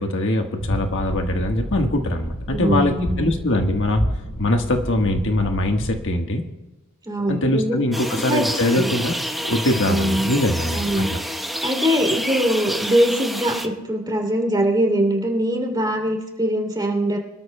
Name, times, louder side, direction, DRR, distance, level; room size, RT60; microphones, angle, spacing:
voice 1, 0.0-4.0 4.4-6.4 7.3-9.1 9.4-11.2, left 1 dB, 65° left, 4 dB, 1.4 m, -22 dB
sound 1, 0.6-6.0, equal, 80° left, 4.9 m, -29 dB
voice 2, 2.5-3.3 7.0-7.8 8.1-8.4 8.7-8.9 9.8-10.3 10.7-11.1 11.6-17.2, equal, 20° right, 1 dB, 2.8 m, -22 dB
sound 2, 7.9-13.7, equal, ahead, 0.9 m, -28 dB
25.5 x 13.0 x 2.2 m, 1.0 s
head